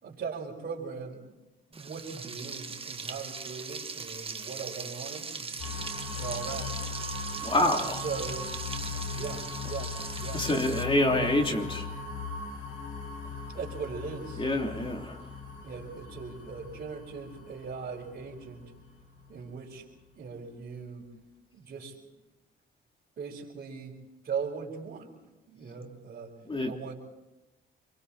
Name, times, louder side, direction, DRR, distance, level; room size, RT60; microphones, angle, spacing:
voice 1, 0.0-1.3 1.7-5.6 6.1-6.7 8.0-8.5 9.1-10.4 11.1-11.3 13.5-14.5 15.6-18.6 19.3-19.8 20.2-21.1 21.5-22.1 23.2-23.9 24.2-25.2 25.5-26.3 26.7-26.9, right 5 dB, 55° right, -6 dB, 4.6 m, -39 dB
Frying (food), 1.7-10.8, right 4 dB, 30° right, 1.4 m, -40 dB
sound 1, 5.6-19.4, left 4 dB, 90° left, 6.0 m, -39 dB
voice 2, 7.4-8.0 10.3-11.9 14.4-15.2 26.5-26.7, left 1 dB, 25° left, 2 dB, 3.3 m, -27 dB
28.0 x 22.5 x 4.3 m, 1.1 s
cardioid pair, 90°, 20 cm